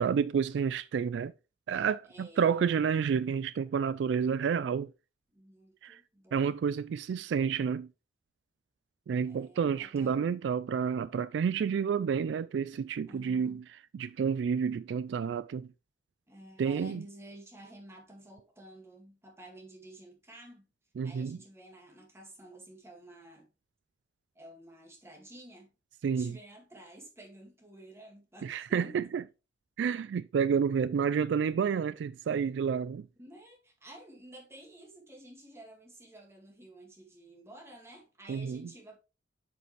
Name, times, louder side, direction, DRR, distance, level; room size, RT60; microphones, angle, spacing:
voice 1, 0.0-1.3 1.7-4.9 5.8-6.0 6.3-7.9 9.1-13.6 13.9-15.7 16.6-17.0 21.0-21.4 26.0-26.3 28.4-29.2 29.8-33.1 38.3-38.6, right 6 dB, 75° right, 0.3 m, -30 dB
voice 2, 2.0-2.6 5.3-6.6 9.2-10.3 13.1-13.6 16.3-20.7 21.0-23.5 24.3-25.7 26.2-29.0 33.2-39.0, right 1 dB, 15° right, 2.0 m, -51 dB
7.8 x 5.1 x 3.2 m
head